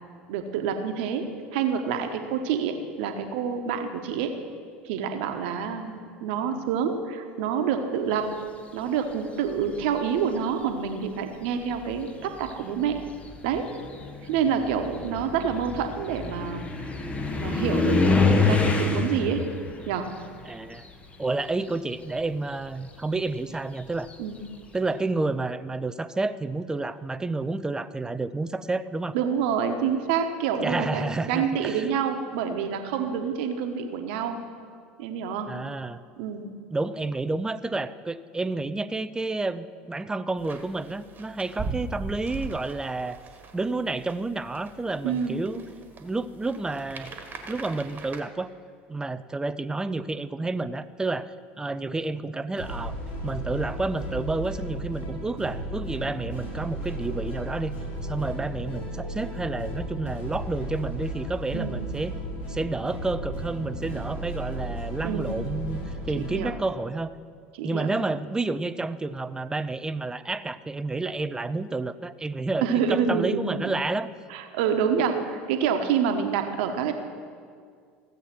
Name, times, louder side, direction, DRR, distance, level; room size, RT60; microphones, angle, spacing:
voice 1, 0.3-1.3 1.5-4.3 4.8-8.3 8.7-13.0 13.4-13.7 14.3-16.6 17.3-19.4 19.9-20.1 24.2-24.4 29.1-34.4 35.0-35.5 36.2-36.5 45.0-45.4 61.5-61.8 65.0-65.4 66.1-66.5 67.5-68.0 72.6-73.7 74.3-76.9, right 7 dB, 65° right, 6 dB, 1.3 m, -27 dB
sound 1, 9.5-10.0 11.0-11.1 11.7-21.6 21.9-24.5, left 3 dB, 20° left, 1.3 m, -28 dB
voice 2, 20.5-20.9 21.2-24.1 24.7-29.2 30.6-31.9 35.5-36.0 36.7-43.2 43.5-45.6 46.0-47.1 47.5-48.5 48.9-53.0 53.2-57.8 58.0-62.1 62.5-67.1 67.6-74.1, right 3 dB, 10° right, 14 dB, 0.5 m, -30 dB
sound 2, 40.4-48.2, right 4 dB, 30° right, 1.6 m, -40 dB
sound 3, 52.6-66.5, right 1 dB, 65° left, 3.2 m, -34 dB
15.5 x 7.9 x 6.0 m, 2.1 s
hypercardioid pair, 75°, 6 cm